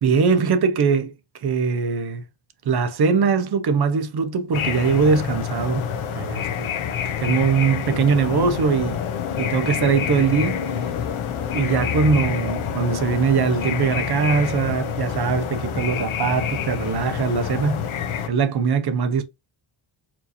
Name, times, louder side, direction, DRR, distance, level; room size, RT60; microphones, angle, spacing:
voice 1, 0.0-1.1 1.4-2.2 2.7-5.9 6.1-6.7 7.2-9.0 9.4-10.6 11.5-17.8 18.3-19.2, right 5 dB, 50° right, 0.8 m, -21 dB
sound 1, 4.5-18.3, left 8 dB, 75° left, 0.7 m, -27 dB
4.5 x 2.7 x 2.8 m
wide cardioid pair, 120°, 48 cm